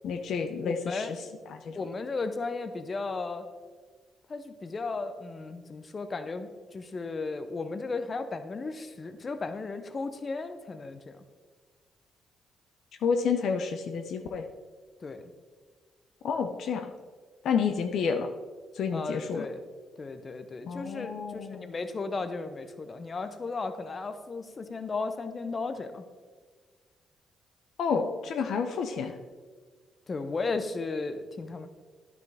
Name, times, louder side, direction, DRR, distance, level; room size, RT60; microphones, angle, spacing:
voice 1, 0.0-1.8 13.0-14.4 16.2-16.9 17.4-18.3 18.7-19.5 20.7-21.7 27.8-29.2, left 6 dB, 70° left, 6 dB, 0.6 m, -30 dB
voice 2, 0.6-1.1 1.7-3.4 4.3-11.2 15.0-15.3 18.9-19.6 20.0-26.0 30.1-31.7, left 3 dB, 40° left, 9 dB, 0.7 m, -35 dB
10.0 x 6.1 x 3.4 m, 1.5 s
supercardioid pair, 65°, 0 cm